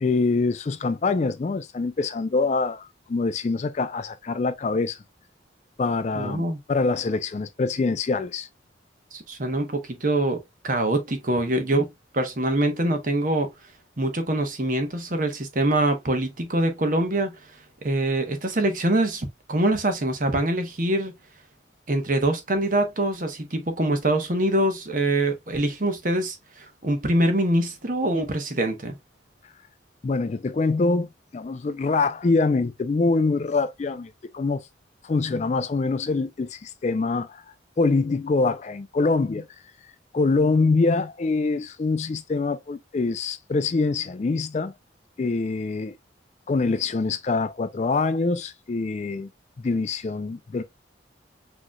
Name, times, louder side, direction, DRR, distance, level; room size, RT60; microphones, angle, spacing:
voice 1, 0.0-5.0 5.8-8.5 30.0-31.1 31.3-34.6 35.0-37.4 37.8-39.5 40.1-44.7 45.2-46.0 46.5-49.3 49.6-50.6, left 3 dB, 40° left, 0.3 m, -24 dB
voice 2, 6.1-6.6 9.1-11.9 12.1-13.5 14.0-17.4 17.8-21.1 21.9-28.9, right 1 dB, 45° right, 1.0 m, -24 dB
6.3 x 3.0 x 2.2 m
head